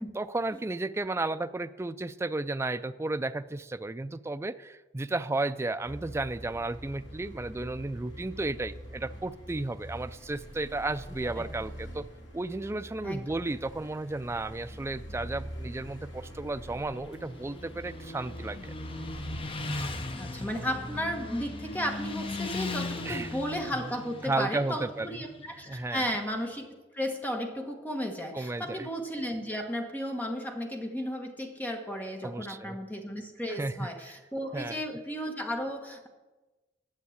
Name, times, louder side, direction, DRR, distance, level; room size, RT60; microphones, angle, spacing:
voice 1, 0.1-12.0 12.3-18.7 23.0-23.3 23.7-23.9 24.2-25.2 25.7-26.0 28.3-28.9 32.2-32.8 33.6-33.9 34.5-34.8, right 2 dB, 15° right, 10 dB, 0.3 m, -33 dB
sound 1, 5.8-23.7, equal, 80° left, 2.3 m, -44 dB
voice 2, 11.1-11.4 13.0-13.2 20.1-26.7 26.9-36.1, equal, 10° left, 3 dB, 1.3 m, -34 dB
Motorcycle, 16.7-26.5, left 2 dB, 30° left, 0.7 m, -39 dB
9.6 x 7.3 x 8.6 m, 1.2 s
head